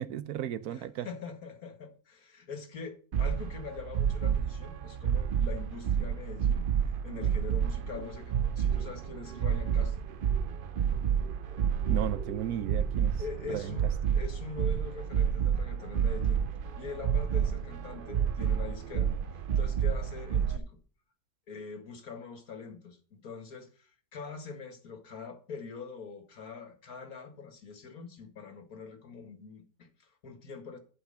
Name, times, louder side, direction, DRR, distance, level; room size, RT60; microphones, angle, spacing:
voice 1, 0.0-1.1 11.9-13.2 13.5-13.7, right 10 dB, 80° right, 1.2 m, -35 dB
voice 2, 0.7-6.6 7.0-10.1 13.2-16.5 16.8-20.8 21.5-30.8, left 5 dB, 70° left, 2.1 m, -43 dB
sound 1, 3.1-20.6, right 8 dB, 60° right, 0.5 m, -30 dB
12.0 x 5.8 x 5.4 m
omnidirectional pair, 1.6 m